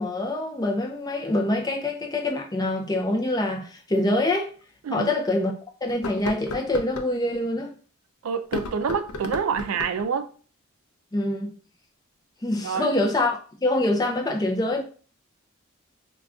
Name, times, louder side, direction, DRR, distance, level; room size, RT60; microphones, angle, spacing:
voice 1, 0.0-4.5 4.9-5.5 5.8-7.7 11.1-11.5 12.4-14.8, left 1 dB, 15° left, 0.4 m, -25 dB
sound 1, 3.9-4.0 4.6-4.7 5.9-7.1 8.4-10.1, left 2 dB, 90° left, 0.4 m, -34 dB
voice 2, 8.2-10.3 12.6-12.9, right 6 dB, 70° right, 0.3 m, -27 dB
2.5 x 2.2 x 3.4 m
head